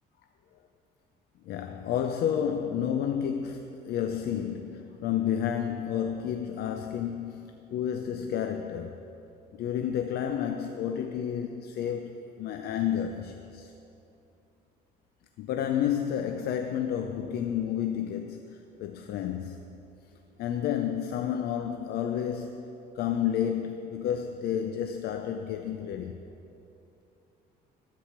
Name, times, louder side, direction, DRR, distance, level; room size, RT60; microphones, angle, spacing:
voice 1, 1.5-9.0 9.5-13.7 15.4-19.8 20.4-26.2, left 9 dB, 70° left, 6 dB, 0.5 m, -31 dB
13.5 x 4.9 x 7.2 m, 2.8 s
cardioid pair, 110°, 17 cm